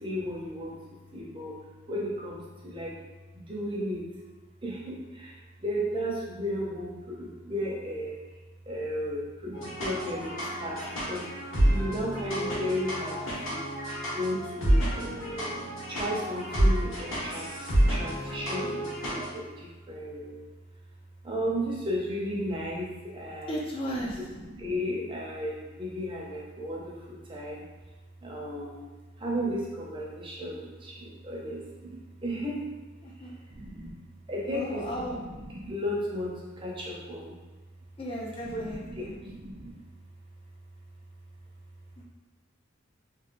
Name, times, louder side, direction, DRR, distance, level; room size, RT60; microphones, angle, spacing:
voice 1, 0.0-0.7 1.1-1.5 1.9-2.9 3.5-4.0 4.6-5.3 5.6-8.2 8.7-9.6 9.8-10.8 11.1-11.2 11.6-13.2 13.5-13.6 14.1-15.5 15.9-17.5 17.9-20.4 21.2-22.9 23.1-23.6 24.0-26.8 27.3-27.6 28.2-28.9 29.2-32.6 33.5-33.9 34.3-36.3 36.6-37.3 38.4-39.7, equal, 25° right, -3 dB, 0.5 m, -34 dB
sound 1, 9.5-19.3, right 1 dB, 90° left, 1.2 m, -29 dB
voice 2, 23.5-24.2 33.0-33.3 34.5-35.2 38.0-39.1, equal, 25° left, -3 dB, 0.4 m, -35 dB
3.1 x 2.7 x 2.5 m, 1.2 s
head